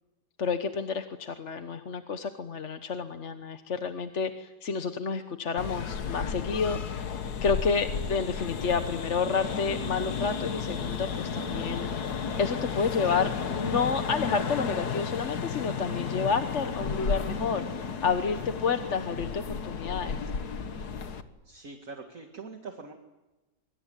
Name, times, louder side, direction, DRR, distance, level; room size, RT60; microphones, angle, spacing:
voice 1, 0.4-7.1 7.4-20.2, left 5 dB, 50° left, 8 dB, 1.4 m, -30 dB
sound 1, 5.6-21.2, left 6 dB, 75° left, 2.0 m, -33 dB
voice 2, 21.4-22.9, right 4 dB, 55° right, 4 dB, 2.5 m, -43 dB
25.5 x 24.5 x 9.1 m, 1.1 s
omnidirectional pair, 1.7 m